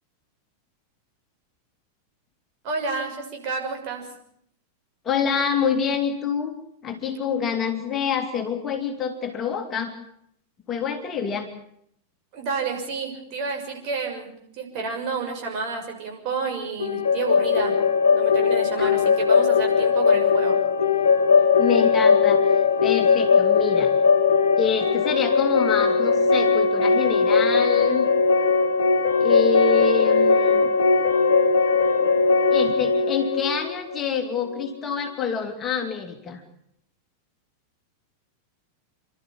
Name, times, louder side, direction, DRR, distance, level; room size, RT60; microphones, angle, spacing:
voice 1, 2.6-4.0 12.3-17.7 18.1-20.6, right 4 dB, 40° right, 2 dB, 6.4 m, -30 dB
voice 2, 5.0-6.6 6.8-9.9 10.7-11.5 18.8-18.9 21.6-23.9 24.6-28.1 29.2-30.7 32.5-36.4, left 6 dB, 25° left, 5 dB, 2.6 m, -27 dB
sound 1, 16.8-34.6, left 5 dB, 70° left, 1.3 m, -19 dB
28.5 x 13.0 x 8.8 m, 0.71 s
figure-of-eight pair, 90°, 0 cm